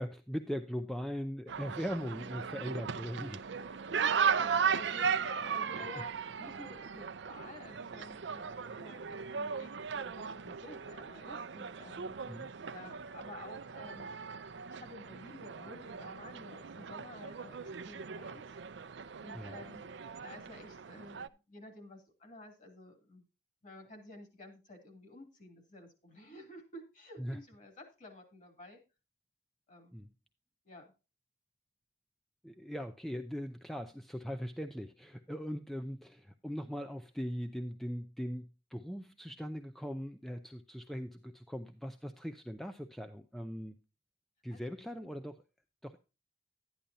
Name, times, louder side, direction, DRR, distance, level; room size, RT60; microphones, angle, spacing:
voice 1, 0.0-3.4 5.7-5.8 12.3-12.5 19.3-19.6 27.2-27.4 29.9-30.1 32.4-43.8 44.4-45.4 45.8-46.0, equal, ahead, 7 dB, 0.4 m, -40 dB
sound 1, 1.5-21.3, right 6 dB, 75° right, 0.5 m, -37 dB
voice 2, 3.7-14.1 14.7-18.6 19.2-23.2 23.6-28.8 29.7-29.9 30.6-30.9 44.5-44.7, left 1 dB, 40° left, 5 dB, 2.8 m, -52 dB
11.5 x 10.0 x 2.7 m, 0.30 s
head